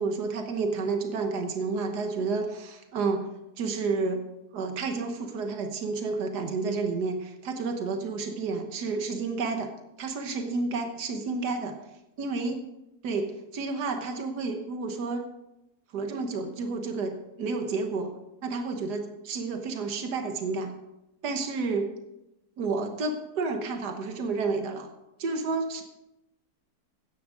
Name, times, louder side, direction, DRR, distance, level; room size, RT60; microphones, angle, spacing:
voice 1, 0.0-3.3 3.6-4.2 4.5-9.7 10.0-11.8 12.2-12.6 13.0-15.3 15.9-18.1 18.4-20.7 21.2-21.9 22.6-24.9 25.2-25.8, right 4 dB, 80° right, 5 dB, 1.8 m, -30 dB
14.5 x 9.7 x 3.9 m, 0.91 s
omnidirectional pair, 1.7 m